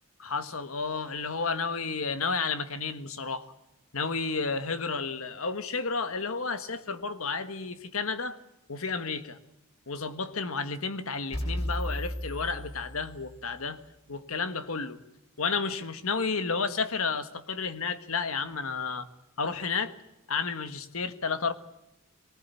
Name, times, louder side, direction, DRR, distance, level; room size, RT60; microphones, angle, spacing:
voice 1, 0.2-3.5 3.9-8.4 8.7-9.4 9.9-13.8 14.1-15.0 15.4-19.1 19.4-19.9 20.3-21.5, left 4 dB, 75° left, 1.6 m, -31 dB
sound 1, 11.3-13.4, equal, 45° left, 7.1 m, -34 dB
23.0 x 19.5 x 8.4 m
head